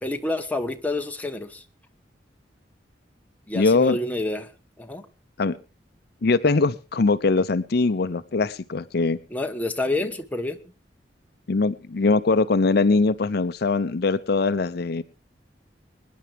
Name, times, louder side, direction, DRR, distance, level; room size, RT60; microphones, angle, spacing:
voice 1, 0.0-1.6 3.5-4.5 4.8-5.1 9.3-10.6, left 2 dB, 10° left, 4 dB, 1.2 m, -28 dB
voice 2, 3.5-4.0 5.4-5.6 6.2-9.2 11.5-15.0, left 3 dB, 60° left, 13 dB, 0.6 m, -21 dB
24.0 x 10.5 x 3.4 m, 0.32 s
head